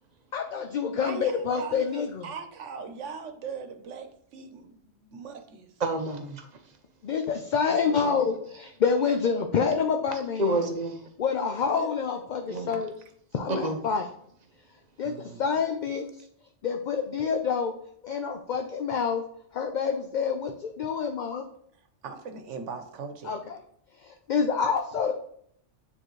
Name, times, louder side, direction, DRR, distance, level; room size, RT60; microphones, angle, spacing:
voice 1, 0.3-2.3 7.0-10.6 11.2-12.9 13.3-14.1 15.0-16.0 16.6-17.7 18.0-19.2 19.5-21.5 23.2-23.6 24.0-25.1, left 6 dB, 55° left, 4 dB, 0.5 m, -27 dB
voice 2, 0.9-5.7 11.7-11.9 15.0-15.4 22.0-23.4, right 5 dB, 85° right, 7 dB, 1.1 m, -40 dB
voice 3, 5.8-6.5 7.9-8.1 10.4-11.0 12.5-12.8 13.5-13.8, right 1 dB, 40° right, 6 dB, 0.8 m, -29 dB
9.0 x 3.8 x 3.1 m, 0.66 s
omnidirectional pair, 1.2 m